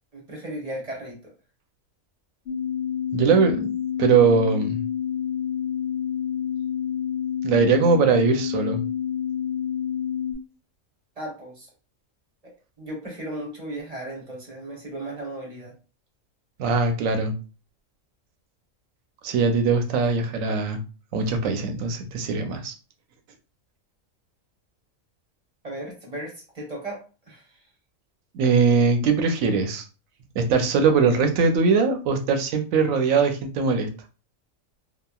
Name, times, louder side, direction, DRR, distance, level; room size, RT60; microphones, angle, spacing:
voice 1, 0.1-1.3 11.2-11.7 12.8-15.7 25.6-27.0 27.3-27.4, right 1 dB, 35° right, -2 dB, 0.9 m, -35 dB
sound 1, 2.5-10.3, left 9 dB, 55° left, 0.8 m, -28 dB
voice 2, 3.1-3.7 4.0-4.8 7.4-8.8 16.6-17.3 19.2-20.8 21.1-22.7 28.3-29.8 30.4-33.9, right 5 dB, 90° right, 6 dB, 1.0 m, -21 dB
2.9 x 2.3 x 2.3 m, 0.33 s
omnidirectional pair, 1.4 m